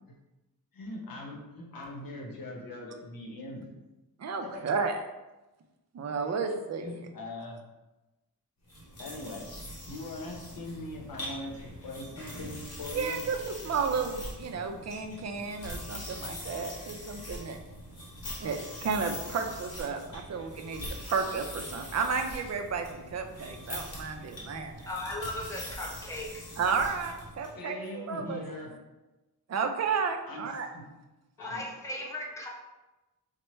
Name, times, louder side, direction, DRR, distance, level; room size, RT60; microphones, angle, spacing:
voice 1, 0.7-3.7 4.4-4.6 6.8-7.6 9.0-9.5 9.9-13.2 20.7-20.8 27.5-28.7 30.3-30.8 31.4-31.6 31.9-32.0, left 2 dB, 65° left, -1 dB, 0.9 m, -41 dB
voice 2, 4.2-4.9 5.9-6.9 12.9-17.6 18.4-24.7 26.6-28.4 29.5-30.7, right 5 dB, 45° right, 5 dB, 0.4 m, -32 dB
sound 1, 8.7-27.5, left 1 dB, 45° left, 1.0 m, -43 dB
voice 3, 24.9-26.4 31.4-32.5, left 1 dB, 10° left, -2 dB, 0.6 m, -37 dB
4.4 x 2.1 x 3.0 m, 1.1 s
wide cardioid pair, 125°, 37 cm